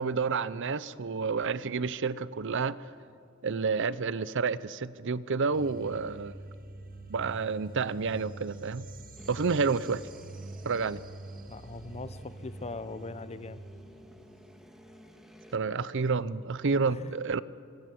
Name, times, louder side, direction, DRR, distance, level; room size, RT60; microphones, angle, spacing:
voice 1, 0.0-2.8 3.4-6.3 7.1-8.8 9.3-10.0 10.6-11.0 15.5-17.4, right 4 dB, 60° right, 17 dB, 0.7 m, -29 dB
sound 1, 5.5-14.6, right 2 dB, 45° right, 1.7 m, -46 dB
sound 2, 9.2-15.6, equal, ahead, 1.9 m, -54 dB
voice 2, 11.5-13.6 16.9-17.1, left 3 dB, 30° left, 13 dB, 0.9 m, -41 dB
26.0 x 24.0 x 7.7 m, 2.4 s
head